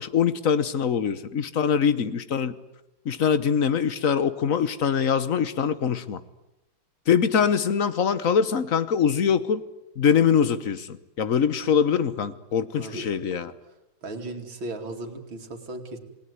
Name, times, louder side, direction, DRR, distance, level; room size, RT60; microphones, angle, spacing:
voice 1, 0.0-2.5 3.0-6.2 7.1-9.6 10.0-13.5, left 7 dB, 50° left, 14 dB, 1.4 m, -23 dB
voice 2, 12.7-13.1 13.7-13.8 14.0-16.0, right 2 dB, 90° right, 3 dB, 3.4 m, -36 dB
28.0 x 19.0 x 9.6 m, 0.93 s
omnidirectional pair, 2.1 m